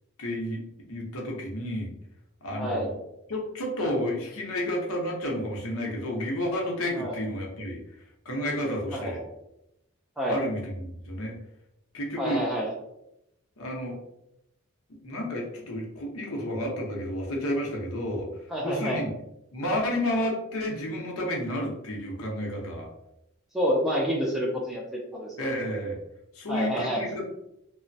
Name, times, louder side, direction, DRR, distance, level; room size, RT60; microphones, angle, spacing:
voice 1, 0.2-0.6 0.9-1.9 2.4-3.0 3.3-7.8 8.2-9.2 10.3-11.4 11.9-12.4 13.6-14.0 15.0-18.3 18.6-19.1 19.5-22.9 25.4-26.0 26.3-27.2, left 1 dB, 90° left, -1 dB, 0.8 m, -31 dB
voice 2, 2.6-2.9 6.9-7.2 8.9-9.2 10.2-10.4 12.2-12.7 18.5-19.0 23.5-25.3 26.5-27.0, equal, ahead, -3 dB, 0.3 m, -28 dB
3.0 x 2.1 x 2.6 m, 0.84 s
head